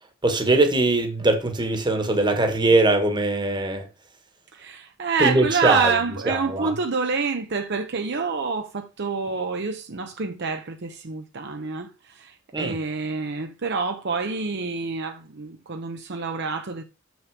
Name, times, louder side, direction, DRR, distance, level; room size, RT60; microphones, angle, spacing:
voice 1, 0.2-3.8 5.2-5.9 6.3-6.7 12.5-12.8, right 2 dB, 20° right, 1.4 m, -21 dB
voice 2, 4.5-16.8, right 4 dB, 55° right, 0.7 m, -27 dB
6.7 x 6.2 x 4.7 m
head